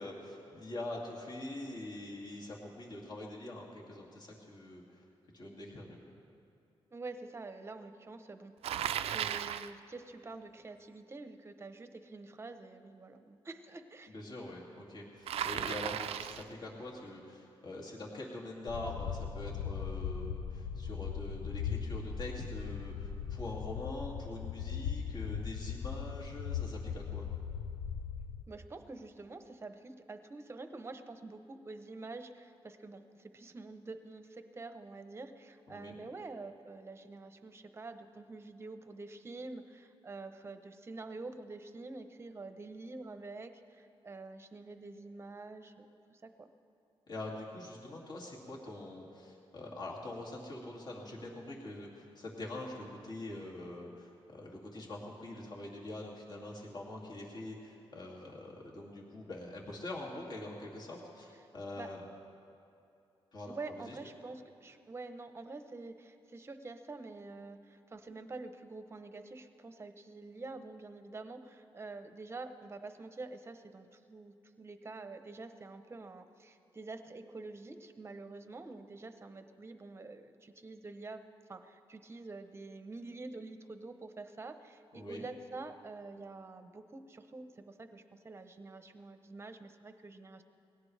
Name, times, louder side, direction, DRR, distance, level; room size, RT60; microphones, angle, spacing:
voice 1, 0.0-5.1 5.3-6.1 14.1-27.3 35.7-36.0 47.1-62.0 63.3-63.5 63.9-64.0 84.9-85.2, left 1 dB, 45° left, -3 dB, 2.5 m, -44 dB
voice 2, 6.9-14.2 28.5-46.5 61.8-61.9 63.5-81.2 81.5-90.4, right 3 dB, 25° right, 9 dB, 0.8 m, -47 dB
Bicycle, 8.6-9.7 15.3-16.5, right 10 dB, 85° right, 0.4 m, -35 dB
sound 1, 18.7-28.4, left 7 dB, 90° left, 0.6 m, -39 dB
21.0 x 17.0 x 3.4 m, 2.6 s
cardioid pair, 120°, 10 cm